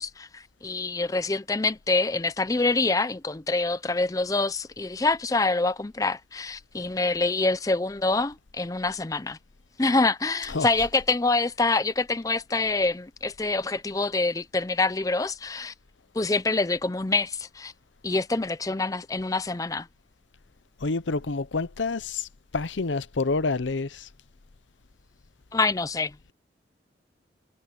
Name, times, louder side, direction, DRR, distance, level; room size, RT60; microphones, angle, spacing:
voice 1, 0.0-9.4 9.8-15.7 16.1-17.7 18.0-19.9 25.5-26.1, left 3 dB, 20° left, 0.5 m, -26 dB
voice 2, 20.8-22.3 22.5-24.1, left 3 dB, 90° left, 0.8 m, -28 dB
head